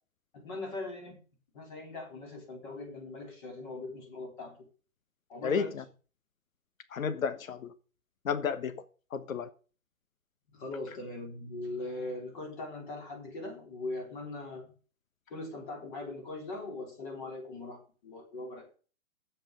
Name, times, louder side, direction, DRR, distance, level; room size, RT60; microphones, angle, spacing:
voice 1, 0.3-1.2 1.5-4.6 5.3-5.8 10.5-14.7 15.3-18.7, left 2 dB, 35° left, 3.7 m, -40 dB
voice 2, 5.4-5.8 6.9-7.7 8.2-8.8 9.1-9.5, left 6 dB, 70° left, 1.3 m, -32 dB
10.0 x 8.2 x 5.0 m
hypercardioid pair, 145°, 42 cm